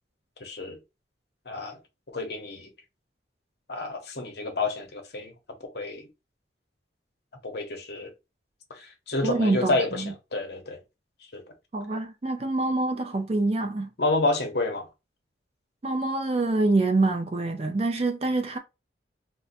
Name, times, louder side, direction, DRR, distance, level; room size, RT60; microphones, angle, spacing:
voice 1, 0.4-0.8 1.5-1.8 2.1-2.7 3.7-5.3 5.6-6.1 7.4-8.1 8.7-10.8 11.3-11.4 14.0-14.9, left 2 dB, 55° left, 0.8 m, -29 dB
voice 2, 9.2-10.1 11.7-13.9 15.8-18.6, right 2 dB, 30° right, 0.4 m, -26 dB
2.5 x 2.2 x 4.0 m
head